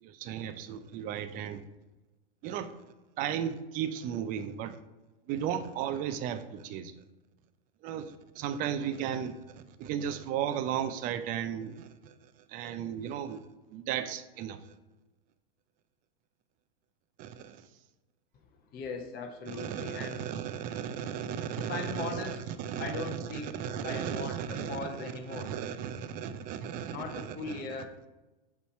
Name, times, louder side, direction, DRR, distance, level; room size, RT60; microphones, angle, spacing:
voice 1, 0.0-1.6 2.4-2.7 3.2-4.8 5.3-6.9 7.8-9.4 9.8-12.1 12.5-13.4 13.7-14.6 17.2-17.6 19.5-27.6, right 9 dB, 30° right, 0.4 m, -35 dB
voice 2, 18.7-20.3 21.6-22.4 22.8-25.5 26.9-28.1, left 4 dB, 30° left, 0.9 m, -39 dB
6.9 x 3.2 x 4.2 m
hypercardioid pair, 130°, 30 cm